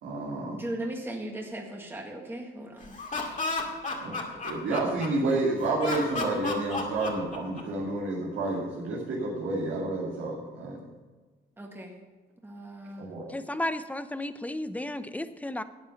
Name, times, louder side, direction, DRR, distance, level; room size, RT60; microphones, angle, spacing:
voice 1, 0.0-0.6 4.0-4.2 4.4-10.8 13.0-13.3, right 2 dB, 85° right, -7 dB, 2.7 m, -30 dB
voice 2, 0.5-3.3 11.6-11.9 12.4-13.1, right 1 dB, 10° right, 0 dB, 1.9 m, -38 dB
Laughter, 2.8-5.3 5.8-7.8, left 3 dB, 40° left, 2.2 m, -32 dB
voice 3, 13.3-15.6, left 1 dB, 5° left, 11 dB, 0.7 m, -33 dB
12.5 x 8.7 x 5.8 m, 1.3 s
cardioid pair, 90°, 20 cm